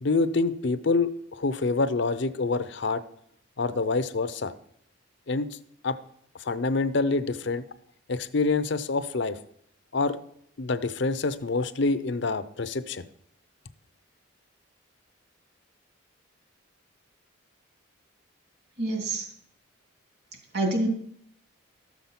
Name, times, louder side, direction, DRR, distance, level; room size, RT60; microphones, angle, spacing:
voice 1, 0.0-3.0 3.6-4.5 5.3-5.6 5.8-6.0 6.4-7.6 8.1-9.4 9.9-10.2 10.6-13.0, left 3 dB, 55° left, 14 dB, 0.6 m, -26 dB
voice 2, 18.8-19.2 20.5-20.9, right 1 dB, 50° right, 2 dB, 3.0 m, -26 dB
13.5 x 7.0 x 5.9 m, 0.68 s
head